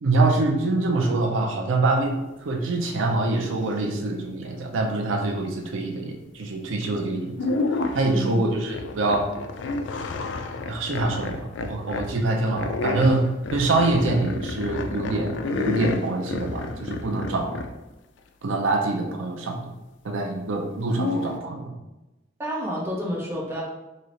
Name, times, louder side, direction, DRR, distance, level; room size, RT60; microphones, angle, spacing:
voice 1, 0.0-7.5 7.9-9.3 10.6-17.6 18.4-19.7 20.0-21.7, right 2 dB, 85° right, 3 dB, 0.5 m, -25 dB
sound 1, 6.8-7.0 7.3-8.2 8.7-12.1 12.6-17.8 20.9-21.4, left 3 dB, 70° left, 0.3 m, -30 dB
voice 2, 8.1-8.4 22.4-23.6, equal, 10° right, -5 dB, 0.8 m, -29 dB
3.2 x 2.7 x 3.9 m, 1.0 s
head